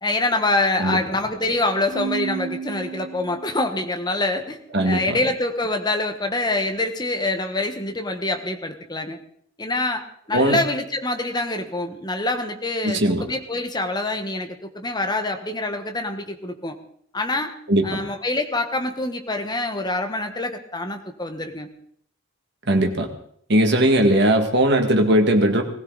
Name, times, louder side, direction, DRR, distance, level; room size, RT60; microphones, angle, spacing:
voice 1, 0.0-4.6 4.8-9.2 9.6-16.8 17.1-17.5 17.8-21.7, left 2 dB, 20° left, 5 dB, 1.3 m, -25 dB
Keyboard (musical), 1.9-3.7, right 6 dB, 80° right, 1.9 m, -32 dB
voice 2, 4.7-5.2 10.3-10.6 12.8-13.3 17.7-18.0 22.7-23.1 23.5-25.6, right 1 dB, 50° right, 4 dB, 2.1 m, -19 dB
20.0 x 15.5 x 4.1 m, 0.65 s
head